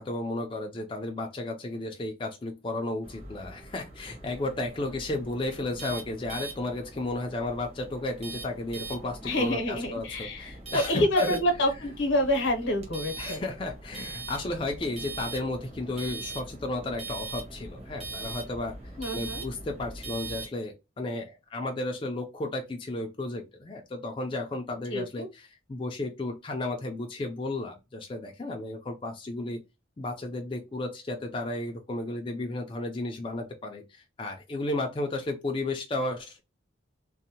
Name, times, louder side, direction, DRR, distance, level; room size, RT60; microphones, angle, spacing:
voice 1, 0.0-11.4 13.2-18.8 19.1-29.6 30.0-36.4, left 2 dB, 25° left, 0.3 m, -33 dB
sound 1, 3.0-20.5, right 3 dB, 30° right, 0.9 m, -42 dB
voice 2, 9.2-13.5 19.0-19.4 24.9-25.3, left 1 dB, 75° left, 0.7 m, -27 dB
2.6 x 2.1 x 2.7 m
head